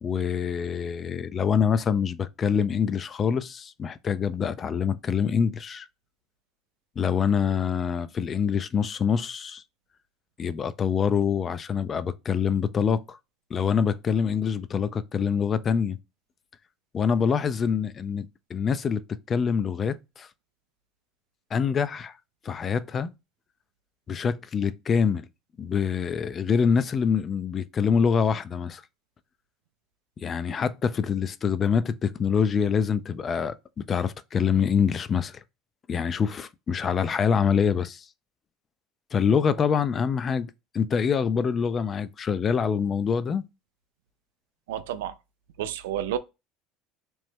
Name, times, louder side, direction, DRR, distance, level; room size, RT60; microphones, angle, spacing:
voice 1, 0.0-5.9 7.0-9.6 10.4-13.2 13.5-16.0 16.9-20.3 21.5-22.1 22.4-23.1 24.1-25.3 25.6-28.8 30.2-35.4 35.9-38.0 39.1-43.4, left 6 dB, 35° left, 0.3 m, -25 dB
voice 2, 44.7-45.2 45.6-46.2, right 11 dB, 80° right, 0.3 m, -30 dB
2.9 x 2.1 x 3.2 m
hypercardioid pair, 80°, 0 cm